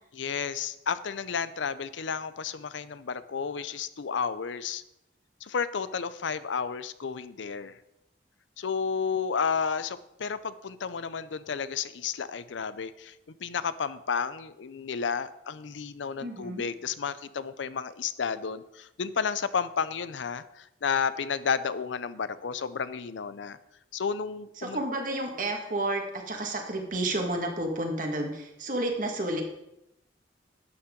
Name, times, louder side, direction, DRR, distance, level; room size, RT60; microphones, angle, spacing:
voice 1, 0.1-4.8 5.4-7.8 8.6-13.2 13.4-23.6 23.9-24.8, left 6 dB, 90° left, 15 dB, 0.6 m, -32 dB
voice 2, 16.2-16.6 24.6-29.4, right 1 dB, 45° right, 2 dB, 1.8 m, -31 dB
12.5 x 8.7 x 3.8 m, 0.85 s
head